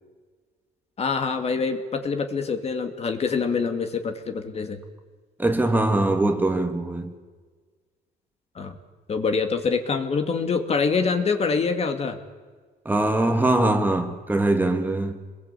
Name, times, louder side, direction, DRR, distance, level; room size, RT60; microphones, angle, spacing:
voice 1, 1.0-4.8 8.6-8.8 9.1-12.2, left 5 dB, 40° left, 2.5 m, -25 dB
voice 2, 5.4-7.2 12.9-15.2, right 2 dB, 10° right, 2.1 m, -22 dB
27.0 x 21.5 x 8.4 m
cardioid pair, 110°, 17 cm